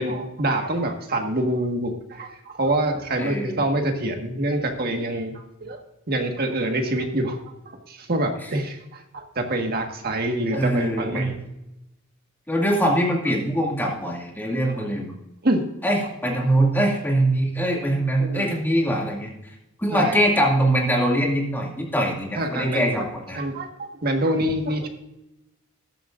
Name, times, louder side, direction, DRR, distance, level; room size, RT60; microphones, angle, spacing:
voice 1, 0.0-5.8 6.1-7.4 7.7-11.4 14.7-14.8 15.4-15.6 18.2-18.5 19.9-20.2 22.3-22.9 23.3-24.9, right 1 dB, 45° right, 4 dB, 1.6 m, -26 dB
voice 2, 3.2-3.6 10.5-11.4 12.5-15.1 15.8-19.3 19.8-23.4, right 1 dB, 10° left, -1 dB, 2.3 m, -23 dB
14.0 x 11.5 x 2.5 m, 0.90 s
head